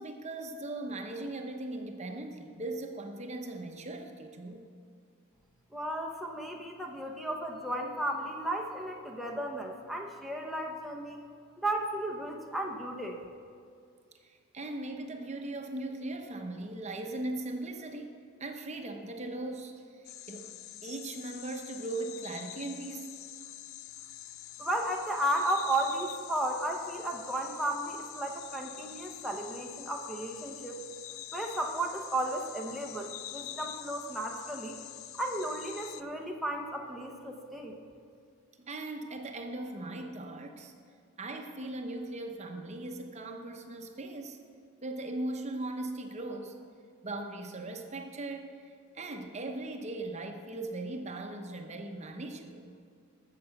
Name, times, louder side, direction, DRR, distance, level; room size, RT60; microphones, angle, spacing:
voice 1, 0.0-4.7 14.2-23.2 38.6-40.7 41.2-44.4 44.8-46.6 47.0-52.7, right 2 dB, 30° right, 4 dB, 0.8 m, -39 dB
voice 2, 5.7-11.2 11.6-13.2 24.6-30.8 31.3-34.8 35.1-37.8, right 1 dB, ahead, 0 dB, 0.8 m, -34 dB
sound 1, 20.0-36.0, left 13 dB, 70° left, 0.4 m, -46 dB
14.5 x 6.8 x 5.9 m, 2.3 s
head